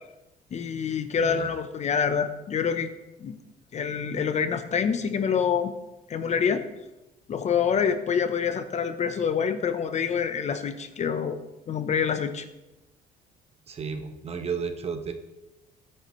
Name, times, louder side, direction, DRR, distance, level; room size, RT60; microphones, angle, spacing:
voice 1, 0.5-2.9 3.2-3.4 3.7-5.7 6.1-6.7 7.3-11.4 11.7-12.4, left 7 dB, 40° left, 9 dB, 0.9 m, -26 dB
voice 2, 1.2-1.5 13.7-15.1, right 5 dB, 35° right, 7 dB, 1.2 m, -33 dB
14.5 x 10.0 x 3.2 m, 0.97 s
cardioid pair, 110°, 17 cm